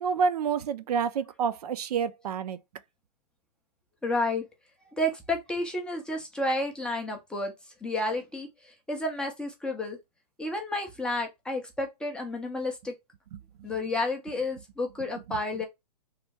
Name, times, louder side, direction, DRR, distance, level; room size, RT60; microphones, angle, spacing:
voice 1, 0.0-2.6 15.3-15.4, right 6 dB, 65° right, 0.5 m, -28 dB
voice 2, 4.0-4.4 5.0-7.5 7.8-10.0 10.4-12.9 13.6-15.6, left 1 dB, 5° left, 0.4 m, -31 dB
3.2 x 2.2 x 3.2 m
hypercardioid pair, 145°, 21 cm